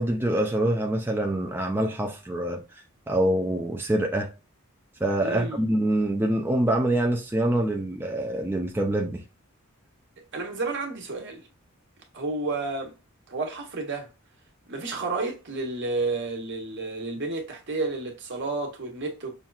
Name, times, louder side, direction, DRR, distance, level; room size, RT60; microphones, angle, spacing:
voice 1, 0.0-4.3 5.0-9.2, right 1 dB, 10° right, 0.4 m, -25 dB
voice 2, 5.2-5.7 10.3-11.4 12.1-12.9 13.3-14.1 14.7-19.3, right 3 dB, 60° right, 1.2 m, -31 dB
5.7 x 2.4 x 2.3 m
head